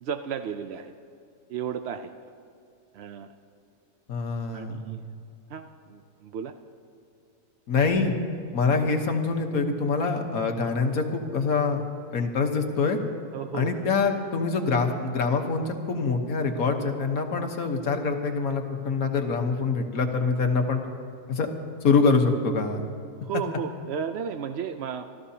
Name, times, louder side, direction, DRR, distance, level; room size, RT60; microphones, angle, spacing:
voice 1, 0.0-0.9 1.5-2.1 2.9-3.3 4.5-5.0 5.5-6.5 8.8-8.9 13.3-13.7 17.4-17.5 23.2-25.0, right 7 dB, 75° right, 8 dB, 0.6 m, -34 dB
voice 2, 4.1-4.9 7.7-8.1 8.5-11.8 12.1-13.0 13.5-20.8 21.3-21.5 21.8-22.8, left 4 dB, 60° left, 4 dB, 1.5 m, -25 dB
27.0 x 13.5 x 2.8 m, 2.5 s
omnidirectional pair, 1.7 m